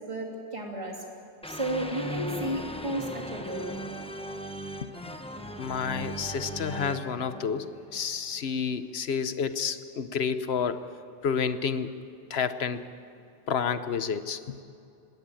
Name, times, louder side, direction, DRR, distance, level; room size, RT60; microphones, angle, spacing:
voice 1, 0.1-0.9 1.4-3.7, right 1 dB, 30° right, 0 dB, 2.8 m, -33 dB
sound 1, 1.4-8.4, equal, 5° left, 1.0 m, -38 dB
voice 2, 5.6-10.8 11.2-11.9 12.3-12.9 13.5-14.6, left 6 dB, 75° left, 11 dB, 1.2 m, -30 dB
20.0 x 18.0 x 8.9 m, 2.5 s
omnidirectional pair, 1.1 m